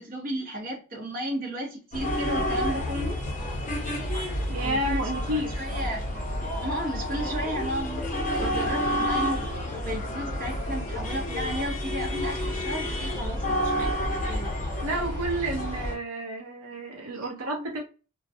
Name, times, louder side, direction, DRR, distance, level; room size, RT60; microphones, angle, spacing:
voice 1, 0.0-3.2 4.6-5.2 5.6-6.0 6.6-14.6 17.1-17.3, right 1 dB, 40° right, 0.8 m, -34 dB
sound 1, 1.9-15.9, equal, 35° left, 0.7 m, -29 dB
voice 2, 4.5-5.6 7.5-7.7 14.8-17.8, right 1 dB, 70° right, 0.7 m, -30 dB
2.2 x 2.1 x 2.6 m
head